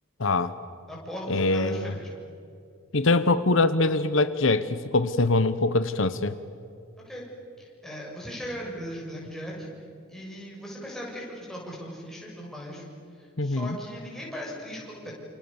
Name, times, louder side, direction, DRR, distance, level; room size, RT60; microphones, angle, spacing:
voice 1, 0.2-0.5 1.3-1.9 2.9-6.3 13.4-13.8, left 2 dB, 65° left, 12 dB, 1.0 m, -23 dB
voice 2, 0.9-2.1 7.1-7.2 7.6-9.8 10.1-12.9 13.2-15.1, equal, ahead, -3 dB, 7.2 m, -38 dB
29.0 x 28.5 x 7.2 m, 2.5 s
head